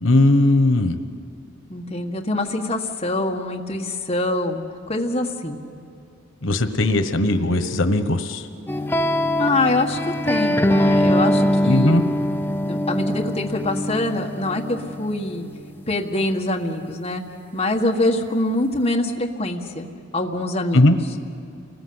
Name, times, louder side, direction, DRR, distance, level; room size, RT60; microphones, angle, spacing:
voice 1, 0.0-1.0 6.4-8.5 11.7-12.0 20.7-21.0, left 2 dB, 90° left, 8 dB, 1.2 m, -18 dB
voice 2, 1.7-5.6 9.4-12.0 12.7-15.5 15.9-17.2 17.5-19.9 20.1-20.9, left 2 dB, 30° left, 1 dB, 1.7 m, -24 dB
sound 1, 8.7-15.7, left 1 dB, 10° left, 0.6 m, -22 dB
29.0 x 20.0 x 8.0 m, 2.5 s
head